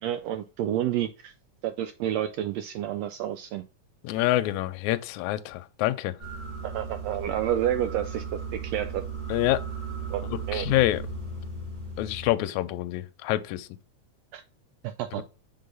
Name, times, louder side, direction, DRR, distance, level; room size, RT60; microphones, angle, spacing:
voice 1, 0.0-1.3 1.6-3.6 6.6-9.0 10.1-10.2 10.5-10.7 14.3-14.4 14.8-15.2, right 11 dB, 85° right, 1.5 m, -29 dB
voice 2, 4.0-6.1 9.3-9.6 10.2-11.0 12.0-13.7 15.2-15.3, left 15 dB, 80° left, 1.9 m, -26 dB
sound 1, 6.2-12.3, right 4 dB, 20° right, 1.4 m, -36 dB
6.6 x 3.8 x 3.9 m
omnidirectional pair, 3.4 m